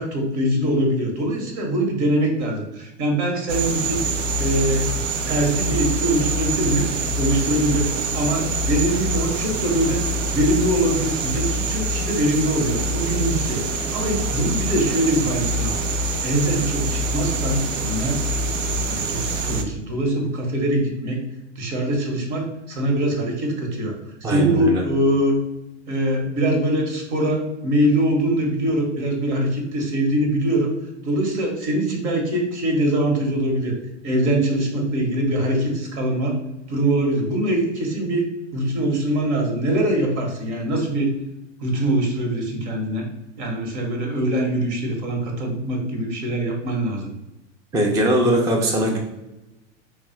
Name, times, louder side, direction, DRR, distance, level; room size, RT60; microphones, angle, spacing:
voice 1, 0.0-4.1 4.4-4.9 5.3-6.9 7.2-10.0 10.3-13.6 13.9-15.8 16.2-18.2 18.8-21.2 21.5-23.9 24.2-25.4 25.9-30.7 31.0-33.7 34.0-36.4 36.7-38.2 38.5-41.1 41.6-43.1 43.4-47.1, right 1 dB, 65° right, 1 dB, 1.3 m, -23 dB
sound 1, 3.5-19.6, right 2 dB, 85° right, 0.6 m, -25 dB
voice 2, 24.2-24.8 47.7-49.0, right 1 dB, 10° right, 0 dB, 0.4 m, -20 dB
3.2 x 2.4 x 4.3 m, 0.95 s
hypercardioid pair, 110°, 37 cm